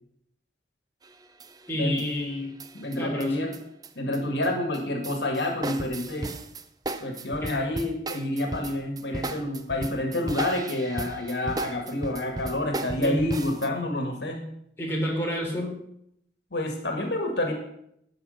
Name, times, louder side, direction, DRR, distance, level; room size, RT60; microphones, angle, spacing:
sound 1, 1.0-1.7 2.0-4.5 4.7-13.7, right 2 dB, 20° right, 0.5 m, -36 dB
voice 1, 1.7-2.5 3.0-3.4 7.4-7.5 13.0-13.3 14.8-15.8, equal, 15° left, -3 dB, 3.2 m, -29 dB
voice 2, 2.7-3.5 3.9-6.3 7.0-14.4 16.5-17.5, left 1 dB, 75° left, 3 dB, 1.8 m, -28 dB
13.0 x 6.1 x 6.4 m, 0.75 s
head